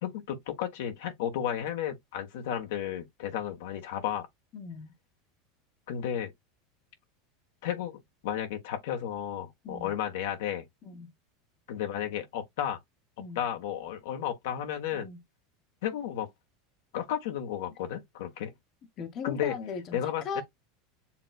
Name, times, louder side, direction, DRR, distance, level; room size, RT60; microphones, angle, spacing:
voice 1, 0.0-4.3 5.9-6.3 7.6-10.7 11.7-12.8 13.3-15.1 15.8-16.3 16.9-18.5 19.2-19.5 19.9-20.4, left 10 dB, 70° left, 1.3 m, -33 dB
voice 2, 4.5-4.9 9.6-10.0 10.8-11.1 13.2-13.4 14.9-15.2 19.0-20.4, left 6 dB, 45° left, 1.2 m, -38 dB
7.3 x 3.1 x 2.3 m
hypercardioid pair, 90°, 0 cm